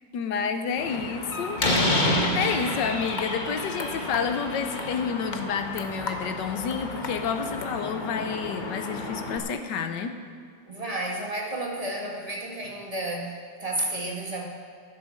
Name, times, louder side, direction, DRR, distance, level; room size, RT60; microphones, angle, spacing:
voice 1, 0.1-1.6 2.3-10.2, left 6 dB, 70° left, 7 dB, 1.4 m, -29 dB
Slam, 0.8-9.4, left 1 dB, 30° left, 1.2 m, -30 dB
sound 1, 1.7-7.7, left 3 dB, 50° left, 0.5 m, -40 dB
voice 2, 10.7-14.4, right 1 dB, 20° right, -2 dB, 1.6 m, -32 dB
11.5 x 9.5 x 6.4 m, 2.2 s
omnidirectional pair, 2.0 m